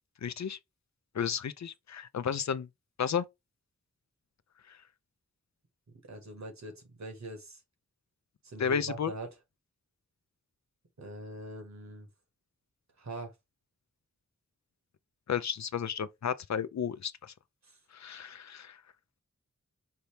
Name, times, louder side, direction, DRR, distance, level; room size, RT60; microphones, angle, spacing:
voice 1, 0.2-0.6 1.1-2.7 3.0-3.3 8.6-9.1 15.3-17.3 17.9-18.8, left 7 dB, 70° left, 0.5 m, -32 dB
voice 2, 6.1-7.6 8.4-9.3 11.0-12.1 13.0-13.3 17.7-17.8, right 2 dB, 70° right, 1.6 m, -42 dB
5.4 x 2.8 x 3.3 m
wide cardioid pair, 75°, 29 cm